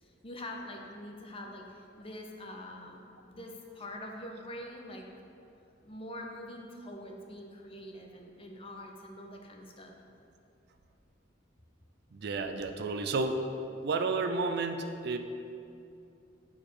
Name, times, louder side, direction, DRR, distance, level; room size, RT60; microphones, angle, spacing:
voice 1, 0.0-5.1 5.8-10.0, left 1 dB, 30° left, 1 dB, 0.8 m, -44 dB
voice 2, 12.1-13.4 13.8-15.2, right 3 dB, 60° right, 7 dB, 0.5 m, -31 dB
9.0 x 4.4 x 5.0 m, 2.6 s
head